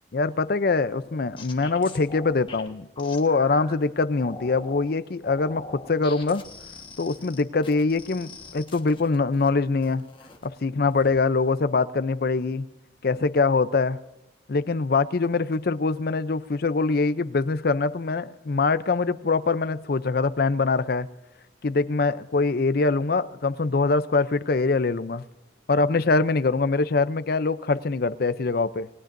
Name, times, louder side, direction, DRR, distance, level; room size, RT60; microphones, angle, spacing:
voice 1, 0.1-6.4 7.0-10.0 10.4-12.7 13.0-14.0 14.5-21.1 21.6-25.2 25.7-28.9, left 3 dB, 55° left, 14 dB, 0.5 m, -23 dB
sound 1, 0.9-3.7 4.2-4.9 5.2-9.5 9.8-10.5 10.9-11.2, left 3 dB, 30° left, 1.4 m, -43 dB
29.0 x 18.0 x 2.6 m, 0.98 s
head